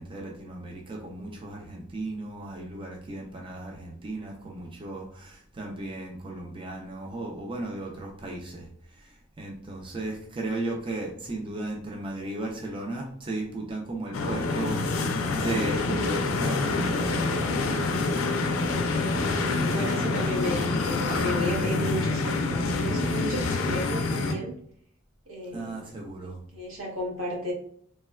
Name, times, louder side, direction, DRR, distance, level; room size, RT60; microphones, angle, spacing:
voice 1, 0.0-8.7 9.0-17.4 25.5-26.4, right 2 dB, 25° right, 0 dB, 0.4 m, -35 dB
sound 1, 14.1-24.3, left 3 dB, 90° left, 0.4 m, -26 dB
voice 2, 18.7-19.1 19.4-24.5 25.3-25.8 26.2-27.5, equal, 85° right, -3 dB, 1.0 m, -34 dB
3.1 x 2.2 x 2.2 m, 0.63 s
head